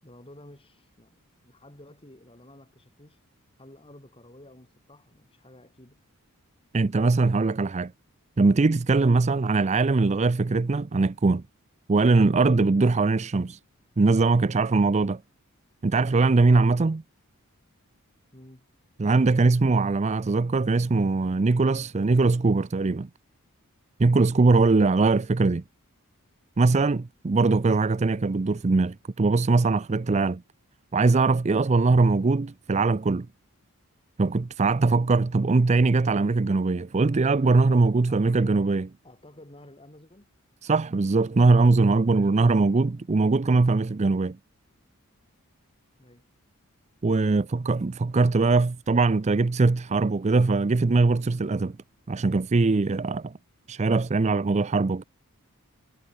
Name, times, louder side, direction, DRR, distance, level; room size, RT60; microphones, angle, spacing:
voice 1, 0.0-3.2 3.6-6.0 18.3-18.7 38.1-38.6 39.0-40.3 46.0-46.3 53.0-53.2, left 1 dB, 25° left, 4.6 m, -51 dB
voice 2, 6.7-7.9 8.4-11.4 11.9-13.6 14.0-15.2 15.8-17.0 19.0-23.1 24.0-25.6 26.6-30.4 30.9-33.3 34.2-38.8 40.6-44.4 47.0-51.8 52.1-53.3 53.7-55.0, right 3 dB, 30° right, 0.5 m, -21 dB
head